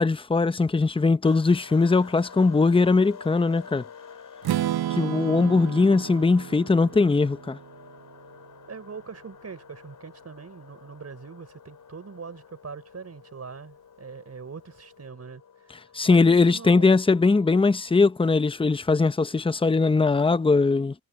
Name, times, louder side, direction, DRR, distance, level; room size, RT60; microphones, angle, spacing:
voice 1, 0.0-3.8 4.9-7.6 15.9-20.9, left 3 dB, 15° left, 0.7 m, -20 dB
sound 1, 1.2-17.9, left 6 dB, 55° left, 3.3 m, -49 dB
Strum, 4.4-8.4, right 12 dB, 85° right, 0.7 m, -32 dB
voice 2, 8.7-16.9, right 5 dB, 40° right, 5.2 m, -42 dB
cardioid pair, 105°, 37 cm